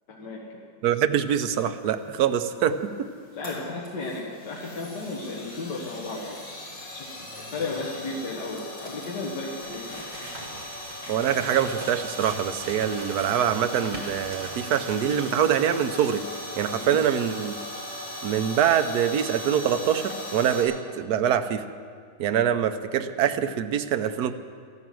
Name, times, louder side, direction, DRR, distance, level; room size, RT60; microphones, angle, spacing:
voice 1, 0.1-0.4 3.4-7.1 7.4-10.0 16.8-17.0, left 3 dB, 70° left, -3 dB, 2.2 m, -34 dB
voice 2, 0.8-3.1 11.1-16.2 16.6-17.5 18.2-21.6 22.2-24.3, right 9 dB, 65° right, 9 dB, 1.2 m, -24 dB
sound 1, 1.8-20.6, left 1 dB, 40° left, 5.9 m, -39 dB
sound 2, 9.6-15.6, right 1 dB, 25° right, 1.8 m, -42 dB
14.0 x 12.0 x 7.7 m, 2.2 s
omnidirectional pair, 1.9 m